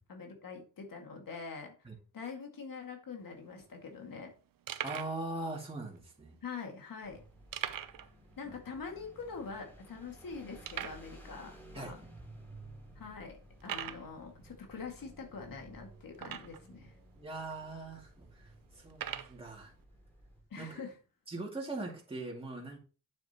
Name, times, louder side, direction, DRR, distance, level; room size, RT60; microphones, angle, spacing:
voice 1, 0.1-1.7 2.1-4.3 6.4-7.2 8.4-12.0 13.0-16.9 20.5-20.9, left 5 dB, 85° left, 2 dB, 2.2 m, -44 dB
sound 1, 3.2-3.3 3.5-3.6 4.2-4.3 4.7-5.2 5.9-6.0 7.5-8.1 8.4-8.5 8.9-9.0 9.6-9.7 10.6-11.1 11.9-12.0 12.5-12.7 13.6-14.1 16.1-16.7 17.5-17.6 18.9-19.4, right 10 dB, 90° right, 0.7 m, -40 dB
voice 2, 4.8-6.4 8.4-8.6 11.7-12.1 17.2-19.7 20.6-20.8 21.3-22.8, right 2 dB, 15° right, -2 dB, 2.4 m, -41 dB
sound 2, 7.0-20.4, right 1 dB, 5° left, 3.6 m, -55 dB
8.9 x 7.6 x 3.0 m, 0.35 s
wide cardioid pair, 130°, 33 cm